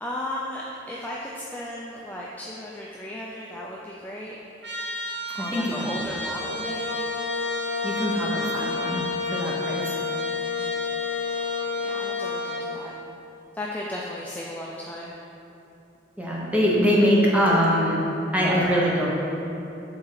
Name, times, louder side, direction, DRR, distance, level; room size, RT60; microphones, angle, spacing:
voice 1, 0.0-4.4 5.3-7.1 11.8-12.9 13.5-15.2, left 1 dB, 10° left, -4 dB, 0.5 m, -35 dB
Trumpet, 4.6-12.7, right 1 dB, 70° right, 1.1 m, -34 dB
sound 1, 6.3-12.9, left 6 dB, 90° left, 0.5 m, -30 dB
voice 2, 7.8-9.0 9.3-9.9 16.2-18.0 18.3-19.1, equal, 10° right, -5 dB, 1.1 m, -22 dB
7.8 x 3.7 x 5.8 m, 2.9 s
head